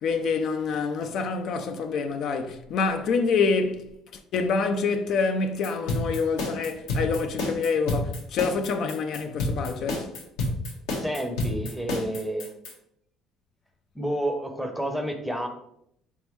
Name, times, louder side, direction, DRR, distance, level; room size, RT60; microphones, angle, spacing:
voice 1, 0.0-3.9 4.3-10.1, left 4 dB, 60° left, 0.4 m, -26 dB
sound 1, 5.6-12.7, left 2 dB, 85° left, 1.2 m, -29 dB
voice 2, 11.0-12.5 13.9-15.5, right 1 dB, ahead, 0.6 m, -30 dB
4.0 x 3.5 x 3.1 m
cardioid pair, 110°, 0 cm